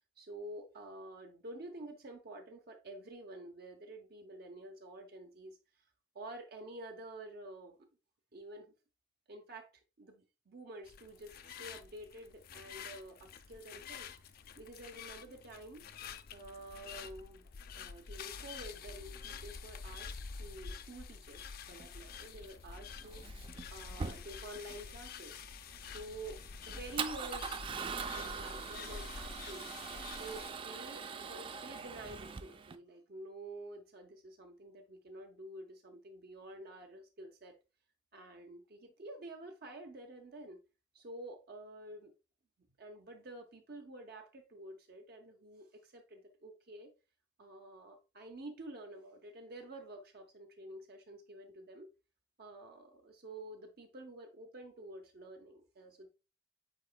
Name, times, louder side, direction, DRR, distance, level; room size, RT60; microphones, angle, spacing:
voice 1, 0.2-5.6 6.1-7.8 8.3-8.7 9.3-9.7 10.0-14.1 14.6-15.8 16.3-17.5 17.8-23.2 23.7-25.4 25.8-29.7 30.1-37.5 38.1-40.6 40.9-42.1 42.8-46.9 47.4-51.9 52.4-56.1, right 1 dB, 55° right, 0.7 m, -49 dB
sound 1, 10.8-30.5, left 6 dB, 50° left, 0.4 m, -48 dB
Male speech man speaking / Car / Engine starting, 21.7-32.8, right 5 dB, 25° right, 0.3 m, -43 dB
8.2 x 2.9 x 2.2 m
head